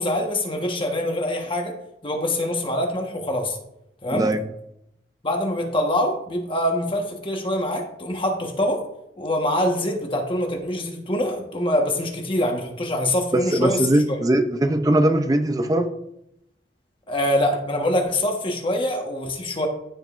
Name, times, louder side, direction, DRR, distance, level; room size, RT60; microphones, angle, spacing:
voice 1, 0.0-1.7 2.0-3.6 4.0-4.3 5.2-8.8 9.2-13.9 17.1-19.7, left 1 dB, 30° left, 2 dB, 1.3 m, -24 dB
voice 2, 13.3-15.9, right 1 dB, 20° right, 7 dB, 0.6 m, -20 dB
14.5 x 5.1 x 2.5 m, 0.81 s
head